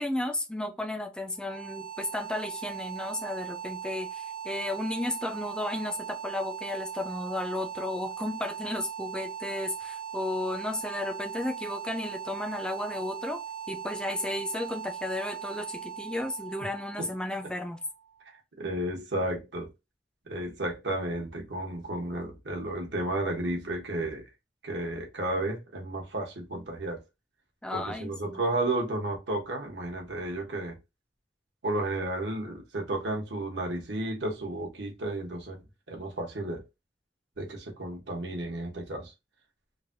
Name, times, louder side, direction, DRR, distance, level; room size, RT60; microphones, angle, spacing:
voice 1, 0.0-13.4 13.7-17.8 27.6-28.4, left 1 dB, 5° left, 0.3 m, -33 dB
sound 1, 1.3-18.3, right 8 dB, 55° right, 0.6 m, -39 dB
voice 2, 18.6-19.7 20.3-24.3 24.6-27.0 27.7-30.8 31.6-35.6 35.9-36.6 37.4-39.1, right 1 dB, 85° right, 1.0 m, -32 dB
3.2 x 2.2 x 2.5 m
head